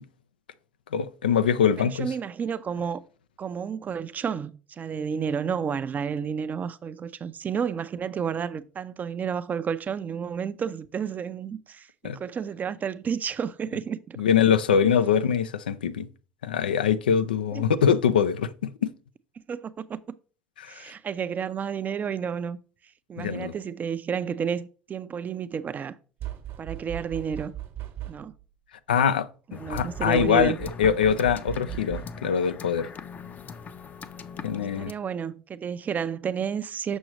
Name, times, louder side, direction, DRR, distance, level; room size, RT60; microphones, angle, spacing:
voice 1, 0.9-2.1 12.0-12.2 14.2-16.1 16.4-18.9 20.6-20.8 23.2-23.5 28.9-30.5 30.8-32.9 34.4-34.9, left 7 dB, 85° left, 0.4 m, -23 dB
voice 2, 1.8-3.0 3.4-14.2 17.5-17.7 19.5-20.0 20.7-22.6 23.1-26.0 26.6-27.5 28.1-28.3 29.5-30.6 34.8-37.0, right 7 dB, 35° right, 0.5 m, -31 dB
sound 1, 26.2-28.4 29.7-32.4, right 13 dB, 55° right, 1.2 m, -38 dB
sound 2, 29.5-34.9, left 6 dB, 35° left, 0.6 m, -41 dB
6.3 x 6.1 x 3.0 m
hypercardioid pair, 70°, 5 cm